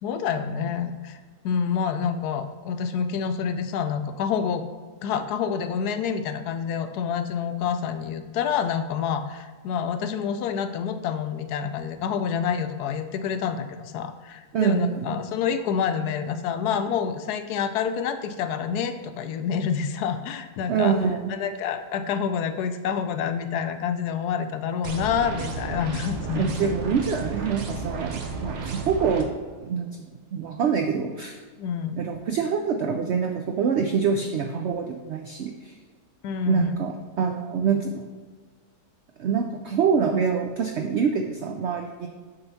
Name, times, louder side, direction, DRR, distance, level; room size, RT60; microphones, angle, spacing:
voice 1, 0.0-1.2 1.4-4.6 5.0-20.9 21.3-26.5 31.6-32.1 36.2-36.8, left 7 dB, 75° left, 9 dB, 1.1 m, -28 dB
voice 2, 14.5-15.2 20.7-21.4 26.3-29.3 29.6-31.4 32.0-35.7 36.5-38.1 39.2-42.1, right 6 dB, 80° right, 4 dB, 0.6 m, -25 dB
sound 1, 24.8-29.2, right 4 dB, 55° right, 1.0 m, -33 dB
6.8 x 3.8 x 5.7 m, 1.5 s
omnidirectional pair, 1.7 m